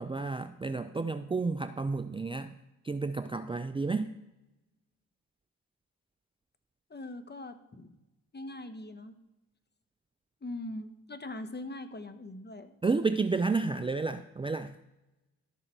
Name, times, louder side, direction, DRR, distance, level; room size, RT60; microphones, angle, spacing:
voice 1, 0.0-2.5 2.8-4.1 12.8-14.7, right 4 dB, 15° right, 10 dB, 0.5 m, -31 dB
voice 2, 6.9-8.0 8.3-9.1 10.4-12.7, left 2 dB, 25° left, 10 dB, 1.2 m, -41 dB
12.0 x 6.7 x 4.4 m, 0.96 s
hypercardioid pair, 40°, 39 cm